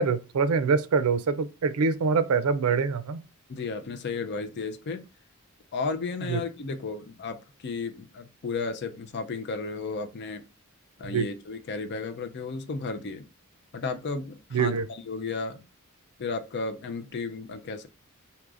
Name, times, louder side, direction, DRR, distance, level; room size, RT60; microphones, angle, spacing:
voice 1, 0.0-3.2 6.3-6.4 11.1-11.2 14.5-14.9, right 5 dB, 90° right, 0.4 m, -24 dB
voice 2, 3.5-5.0 5.7-10.4 11.0-13.3 13.7-15.6 16.2-17.9, left 4 dB, 50° left, 0.5 m, -33 dB
4.7 x 2.9 x 2.4 m
head